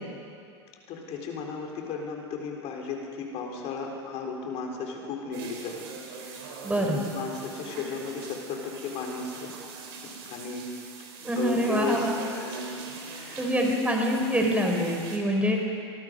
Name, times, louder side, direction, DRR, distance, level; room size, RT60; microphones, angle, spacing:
voice 1, 0.9-9.5 10.3-10.7 11.4-12.6 13.1-13.5, left 5 dB, 45° left, 1 dB, 4.0 m, -35 dB
sound 1, 5.3-15.2, right 4 dB, 65° right, 4.0 m, -41 dB
voice 2, 6.6-7.0 11.2-12.2 13.4-15.6, equal, 10° right, 1 dB, 4.1 m, -25 dB
25.0 x 19.5 x 5.3 m, 2.4 s
hypercardioid pair, 85°, 14 cm